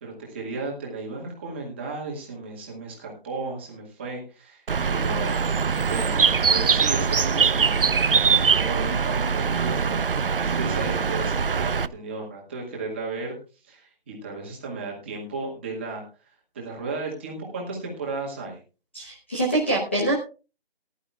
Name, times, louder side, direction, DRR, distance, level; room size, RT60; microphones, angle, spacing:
voice 1, 0.0-5.5 5.8-8.3 8.5-13.4 13.6-16.0 16.5-18.6, right 3 dB, 10° right, -2 dB, 1.8 m, -34 dB
Bird, 4.7-11.9, right 6 dB, 60° right, 0.6 m, -22 dB
voice 2, 18.9-20.1, right 1 dB, 10° left, -4 dB, 1.0 m, -24 dB
19.5 x 11.5 x 2.4 m, 0.33 s
hypercardioid pair, 175°, 31 cm